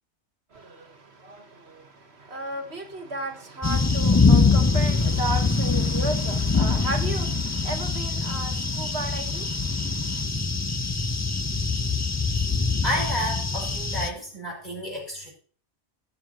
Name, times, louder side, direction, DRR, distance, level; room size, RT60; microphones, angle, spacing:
voice 1, 0.5-10.2, right 2 dB, 65° right, 1.7 m, -34 dB
sound 1, 3.6-14.1, left 4 dB, 20° left, 0.4 m, -23 dB
voice 2, 12.8-15.3, equal, 40° left, 5.8 m, -31 dB
19.5 x 7.5 x 3.0 m
omnidirectional pair, 1.2 m